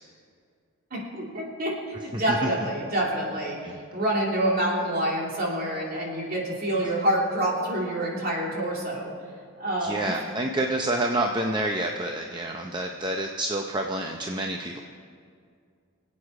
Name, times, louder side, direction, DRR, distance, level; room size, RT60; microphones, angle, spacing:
voice 1, 0.9-3.6 3.9-9.1 9.6-10.2, right 1 dB, 40° right, -3 dB, 3.0 m, -27 dB
voice 2, 9.8-14.8, right 1 dB, 20° right, 2 dB, 0.6 m, -28 dB
25.0 x 8.5 x 4.8 m, 2.2 s
head